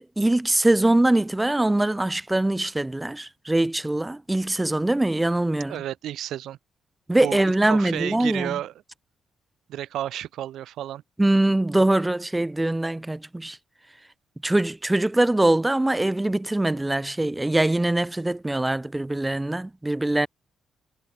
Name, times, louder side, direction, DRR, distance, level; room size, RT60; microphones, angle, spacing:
voice 1, 0.0-5.8 7.1-8.6 11.2-13.6 14.4-20.3, right 1 dB, 10° right, 1.6 m, -23 dB
voice 2, 5.7-6.6 7.2-8.7 9.7-11.0, right 12 dB, 75° right, 2.2 m, -32 dB
cardioid pair, 90°, 0 cm